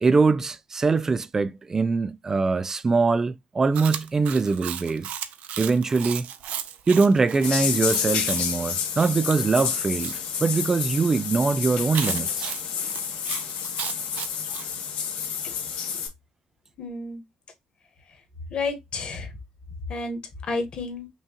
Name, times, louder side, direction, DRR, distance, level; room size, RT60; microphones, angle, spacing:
voice 1, 0.0-5.1 5.6-6.3 6.9-12.5, right 4 dB, 20° right, 0.3 m, -23 dB
Chewing mastication, 3.7-10.2 11.9-14.7, right 10 dB, 80° right, 0.5 m, -35 dB
sound 1, 7.4-16.1, left 7 dB, 90° left, 1.1 m, -29 dB
voice 2, 16.8-17.2 18.5-19.3 19.9-20.2 20.5-21.1, left 3 dB, 45° left, 1.3 m, -30 dB
5.5 x 2.3 x 2.8 m
cardioid pair, 160°, 2 cm